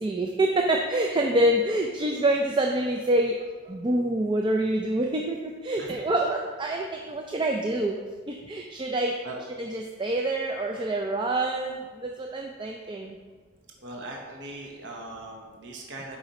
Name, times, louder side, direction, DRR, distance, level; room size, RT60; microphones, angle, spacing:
voice 1, 0.0-3.3 3.7-5.4 5.6-8.0 8.5-9.1 9.6-11.8 12.3-13.1, right 1 dB, 20° right, 2 dB, 0.3 m, -26 dB
voice 2, 5.7-6.0 9.2-9.4 13.8-16.2, right 2 dB, 55° right, 0 dB, 0.9 m, -40 dB
6.6 x 4.9 x 4.2 m, 1.4 s
head